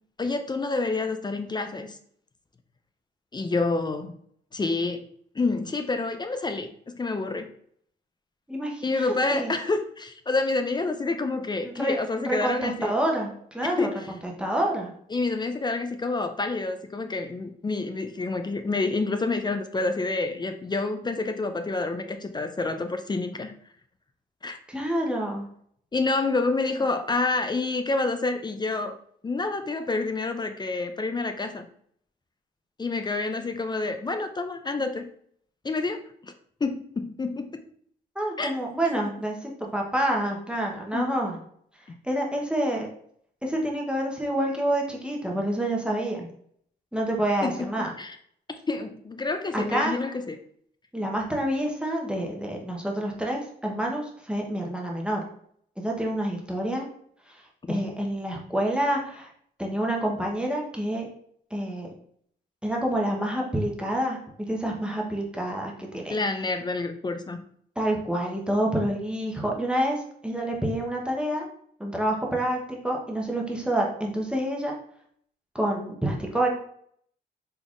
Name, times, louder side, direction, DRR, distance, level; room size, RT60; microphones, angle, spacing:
voice 1, 0.2-2.0 3.3-4.1 4.5-5.1 5.4-7.5 8.8-12.9 13.6-14.0 15.1-23.5 24.4-24.6 25.9-29.0 29.2-31.7 32.8-35.1 35.6-36.0 36.6-37.6 38.4-38.5 40.9-41.1 47.4-48.2 48.7-50.4 57.6-57.9 66.1-67.4, left 3 dB, 25° left, 8 dB, 0.4 m, -28 dB
voice 2, 8.5-9.5 11.6-12.0 12.2-14.9 24.7-25.4 38.2-41.4 42.0-42.9 43.4-46.3 46.9-47.9 49.5-49.9 50.9-55.2 55.8-56.9 57.7-59.3 59.6-61.0 61.5-61.9 62.6-66.1 67.8-71.5 71.8-74.8 75.5-76.5, right 1 dB, 5° right, -1 dB, 0.9 m, -28 dB
3.8 x 3.4 x 2.4 m, 0.64 s
cardioid pair, 65°, 18 cm